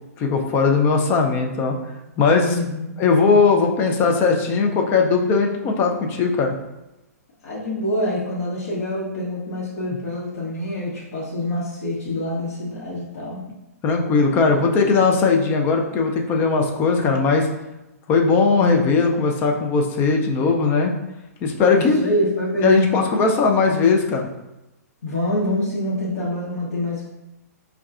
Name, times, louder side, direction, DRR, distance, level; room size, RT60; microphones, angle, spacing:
voice 1, 0.2-1.8 2.2-2.6 3.0-6.5 13.8-17.5 18.1-20.9 21.4-22.0 22.6-24.3, left 4 dB, 25° left, 2 dB, 0.4 m, -19 dB
voice 2, 2.3-3.0 7.4-13.4 21.7-23.1 25.0-27.1, left 1 dB, 60° left, -8 dB, 0.9 m, -26 dB
5.3 x 2.3 x 2.4 m, 0.94 s
figure-of-eight pair, 120°, 9 cm